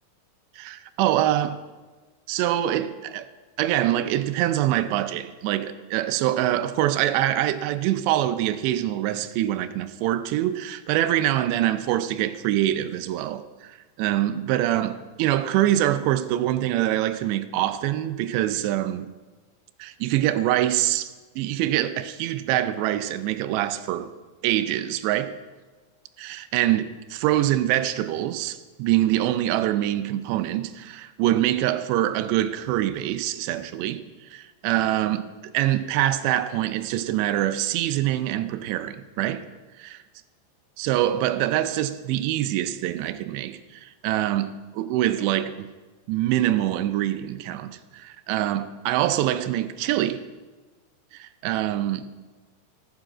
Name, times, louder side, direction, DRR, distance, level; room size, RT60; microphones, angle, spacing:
voice 1, 0.6-1.6 2.3-3.3 3.6-19.1 19.8-24.1 24.4-25.3 26.2-39.4 40.8-45.7 46.1-50.3 51.1-52.1, right 13 dB, 85° right, 2.8 m, -25 dB
15.5 x 11.5 x 4.9 m
omnidirectional pair, 5.0 m